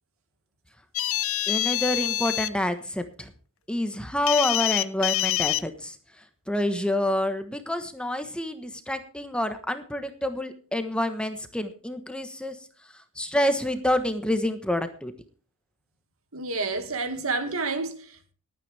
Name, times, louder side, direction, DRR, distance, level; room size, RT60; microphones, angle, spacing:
sound 1, 1.0-2.5 4.3-5.6, left 14 dB, 70° left, 0.7 m, -26 dB
voice 1, 1.5-3.3 3.7-6.0 6.5-12.6 13.1-15.1, left 1 dB, 5° left, 1.2 m, -28 dB
voice 2, 16.3-18.3, right 3 dB, 70° right, 2.1 m, -30 dB
20.5 x 9.3 x 3.4 m
head